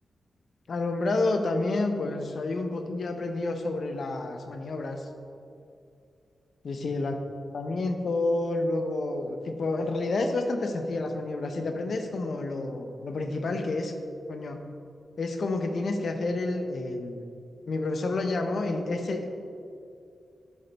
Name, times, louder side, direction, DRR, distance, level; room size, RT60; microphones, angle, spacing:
voice 1, 0.7-5.1 6.6-7.2 7.5-13.9 14.3-14.6 15.2-17.2 17.7-19.3, left 2 dB, 65° left, 6 dB, 0.6 m, -29 dB
11.0 x 3.9 x 3.3 m, 2.5 s
cardioid pair, 70°, 0 cm